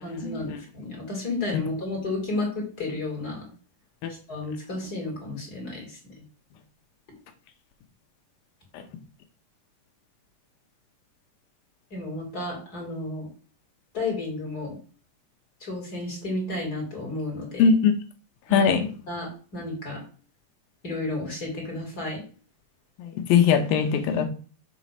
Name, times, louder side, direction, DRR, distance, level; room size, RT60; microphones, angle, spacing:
voice 1, 0.0-3.5 4.3-6.0 11.9-13.3 13.9-14.7 15.6-17.7 18.5-18.7 19.1-20.0 20.8-22.2, left 2 dB, 25° left, 3.3 m, -32 dB
voice 2, 17.6-17.9 18.5-18.9 23.0-24.3, left 6 dB, 85° left, 2.7 m, -21 dB
7.7 x 4.1 x 5.9 m
omnidirectional pair, 4.1 m